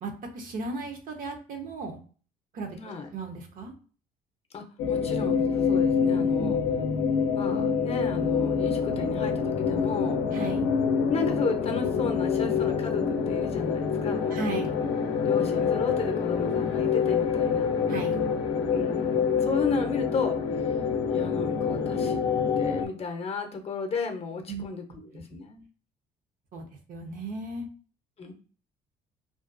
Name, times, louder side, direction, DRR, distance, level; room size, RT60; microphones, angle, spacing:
voice 1, 0.0-2.0 2.5-2.8 3.1-3.7 6.4-6.7 10.3-10.7 14.3-14.7 17.9-18.3 24.5-25.2 26.5-27.7, right 3 dB, 55° right, 4 dB, 0.7 m, -36 dB
voice 2, 2.7-3.1 4.5-6.6 7.3-10.2 11.1-14.4 15.3-17.7 18.6-20.7 21.1-22.2 22.6-25.6 28.2-28.3, left 4 dB, 35° left, 4 dB, 0.6 m, -33 dB
sound 1, 4.8-22.9, left 6 dB, 80° left, 0.5 m, -26 dB
2.4 x 2.2 x 2.5 m, 0.40 s
cardioid pair, 110°, 17 cm